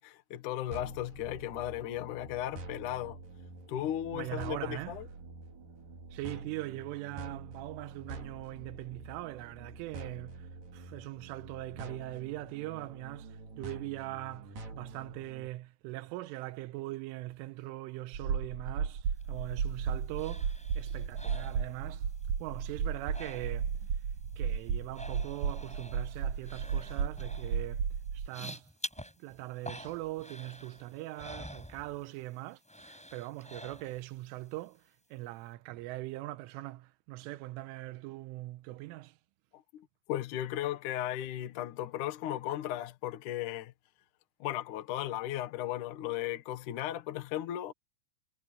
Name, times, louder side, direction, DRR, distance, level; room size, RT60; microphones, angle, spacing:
voice 1, 0.0-3.2 3.7-5.1 39.5-43.7 44.4-47.7, left 13 dB, 75° left, 1.8 m, -36 dB
sound 1, 0.7-15.5, right 3 dB, 45° right, 5.5 m, -47 dB
voice 2, 4.1-5.0 6.1-22.1 22.4-23.7 24.4-27.9 28.1-28.7 29.0-34.8 35.1-39.1, right 18 dB, 90° right, 3.3 m, -41 dB
sound 2, 18.1-28.3, right 6 dB, 60° right, 2.0 m, -34 dB
sound 3, 19.2-22.3 22.5-23.9 24.1-32.3 32.6-34.2 34.6-34.7, equal, ahead, 5.9 m, -48 dB
omnidirectional pair, 5.8 m